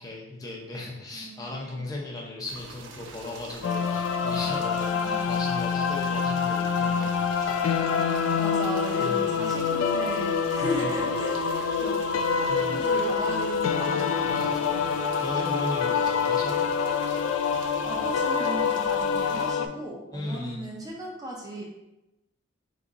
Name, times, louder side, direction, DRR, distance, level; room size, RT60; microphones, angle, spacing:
voice 1, 0.0-7.5 9.0-9.5 10.6-11.0 12.5-12.8 14.2-16.6 17.8-17.9 20.1-20.6, left 2 dB, 20° left, -3 dB, 0.7 m, -37 dB
voice 2, 1.1-1.8 4.9-5.3 8.4-12.0 12.7-14.1 17.5-21.6, right 1 dB, 20° right, -2 dB, 0.6 m, -36 dB
sound 1, 2.5-19.5, right 4 dB, 65° right, 0.5 m, -45 dB
sound 2, 3.6-19.7, left 6 dB, 85° left, 0.3 m, -26 dB
sound 3, 8.7-20.3, left 3 dB, 45° right, 0.9 m, -36 dB
3.8 x 2.8 x 3.8 m, 0.95 s
head